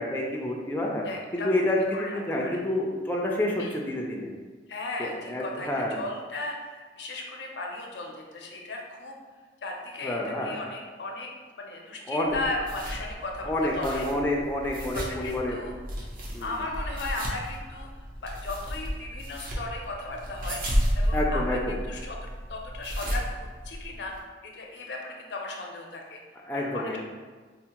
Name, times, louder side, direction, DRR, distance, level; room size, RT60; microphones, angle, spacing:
voice 1, 0.0-1.1 1.3-4.3 5.0-6.0 10.0-10.5 12.1-12.4 13.5-15.6 16.3-16.5 21.1-21.7 26.4-27.0, left 1 dB, 10° left, -2 dB, 0.3 m, -28 dB
voice 2, 1.0-1.7 1.9-2.6 3.6-3.8 4.7-9.2 9.6-11.3 11.6-14.1 14.9-15.7 16.4-17.9 18.2-22.2 22.5-24.1 24.4-26.2 26.5-27.0, left 2 dB, 70° left, 0 dB, 0.5 m, -36 dB
sound 1, 12.3-24.2, equal, 55° right, 0.7 m, -33 dB
4.3 x 2.0 x 2.9 m, 1.4 s
head